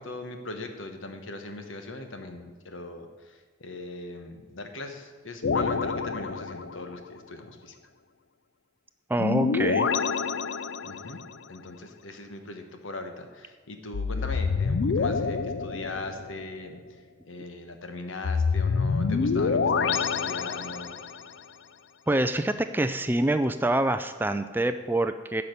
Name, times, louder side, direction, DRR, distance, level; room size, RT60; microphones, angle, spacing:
voice 1, 0.0-7.7 10.8-11.2 11.5-16.8 17.2-20.9, left 2 dB, 80° left, 6 dB, 1.2 m, -40 dB
sound 1, 5.4-7.0 9.2-11.3 13.9-16.4 18.2-21.2, left 5 dB, 65° left, 0.4 m, -27 dB
voice 2, 9.1-9.9 22.1-25.4, right 1 dB, 10° right, 10 dB, 0.3 m, -26 dB
10.5 x 5.7 x 6.8 m, 1.5 s
head